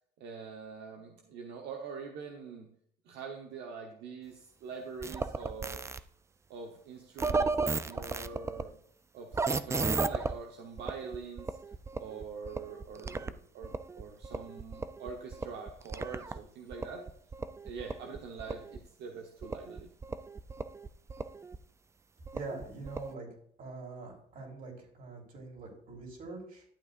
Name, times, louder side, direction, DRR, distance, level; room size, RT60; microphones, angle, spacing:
voice 1, 0.2-2.7 3.0-5.8 6.5-8.8 9.1-11.6 12.0-17.0 17.6-19.9, right 5 dB, 80° right, 1 dB, 1.1 m, -44 dB
sound 1, 5.0-6.0 7.2-8.6 9.3-10.3 10.8-13.3 13.6-16.4 16.7-18.8 19.4-21.6 22.3-23.1, right 4 dB, 15° right, 0.4 m, -35 dB
voice 2, 22.3-23.3 23.6-26.6, right 3 dB, 55° right, -1 dB, 3.8 m, -44 dB
12.0 x 8.3 x 2.6 m, 0.66 s
cardioid pair, 110°, 17 cm